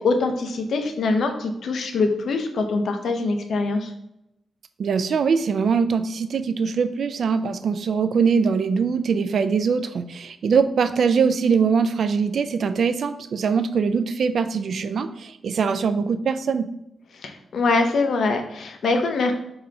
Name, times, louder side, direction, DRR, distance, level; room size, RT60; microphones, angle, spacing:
voice 1, 0.0-3.9 17.2-19.3, left 3 dB, 60° left, 5 dB, 0.6 m, -23 dB
voice 2, 4.8-16.7, right 5 dB, 55° right, 10 dB, 0.3 m, -22 dB
4.0 x 2.8 x 4.7 m, 0.83 s
wide cardioid pair, 180°, 0 cm